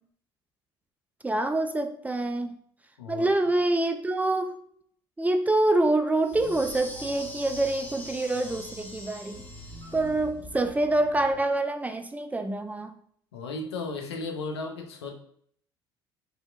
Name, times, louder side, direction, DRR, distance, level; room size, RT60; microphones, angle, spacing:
voice 1, 1.2-2.6 3.1-4.6 5.2-9.4 9.9-12.9, right 2 dB, 10° right, 7 dB, 0.3 m, -26 dB
voice 2, 3.0-3.3 13.3-15.1, left 3 dB, 85° left, 3 dB, 0.5 m, -35 dB
sound 1, 6.2-10.2, left 1 dB, 15° left, 0.7 m, -43 dB
sound 2, 6.3-11.4, equal, 35° left, 1.1 m, -46 dB
3.4 x 2.6 x 2.3 m, 0.62 s
hypercardioid pair, 60°, 13 cm